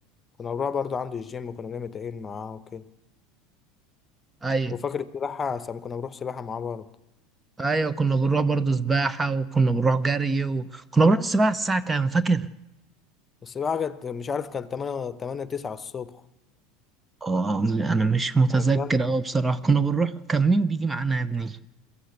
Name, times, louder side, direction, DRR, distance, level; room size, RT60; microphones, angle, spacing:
voice 1, 0.4-2.8 4.7-6.9 13.4-16.2 18.5-18.9, left 6 dB, 25° left, 1.1 m, -32 dB
voice 2, 4.4-4.7 7.6-12.5 17.2-21.6, right 3 dB, 15° right, 0.9 m, -23 dB
23.5 x 14.0 x 8.3 m
figure-of-eight pair, 75°, 0 cm